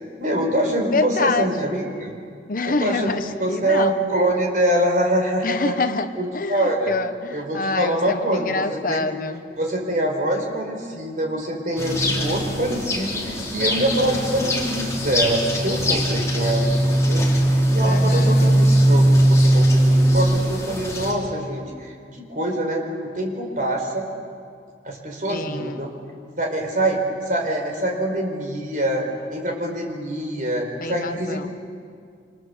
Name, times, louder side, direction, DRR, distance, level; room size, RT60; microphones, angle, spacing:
voice 1, 0.2-2.2 2.7-5.7 6.2-6.9 7.3-9.1 9.6-17.4 17.7-24.1 24.8-25.9 26.4-27.0 27.3-31.5, right 1 dB, 45° right, 2 dB, 4.5 m, -25 dB
voice 2, 0.9-1.6 2.5-3.9 5.4-9.4 17.8-18.7 25.3-25.9 30.8-31.5, left 3 dB, 50° left, 10 dB, 0.9 m, -26 dB
sound 1, 11.8-21.1, right 1 dB, 15° left, 3.9 m, -19 dB
27.5 x 26.5 x 7.1 m, 2.2 s
head